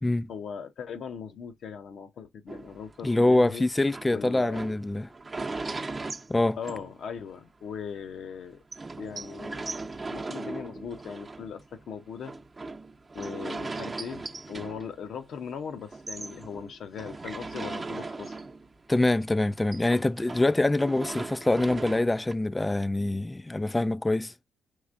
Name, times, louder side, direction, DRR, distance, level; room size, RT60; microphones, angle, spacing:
voice 1, 0.3-3.7 4.1-4.7 6.6-8.6 9.0-9.8 10.1-12.3 13.1-18.4, left 7 dB, 65° left, 0.8 m, -39 dB
sound 1, 2.5-7.4 7.8-7.9 8.2-8.3 8.7-15.5 15.8-18.9 19.1-22.3, right 3 dB, 30° right, 0.8 m, -39 dB
voice 2, 3.0-5.1 6.3-6.6 18.9-24.3, left 2 dB, 20° left, 0.3 m, -25 dB
4.8 x 3.2 x 2.5 m
hypercardioid pair, 45°, 0 cm